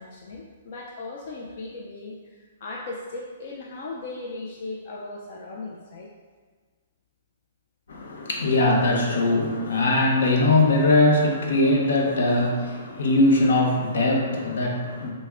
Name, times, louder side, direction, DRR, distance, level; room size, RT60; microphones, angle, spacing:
voice 1, 0.0-6.1, left 2 dB, 45° left, -3 dB, 0.3 m, -37 dB
voice 2, 7.9-15.1, left 2 dB, 70° left, 0 dB, 0.6 m, -21 dB
3.3 x 2.0 x 3.5 m, 1.5 s
hypercardioid pair, 170°, 0 cm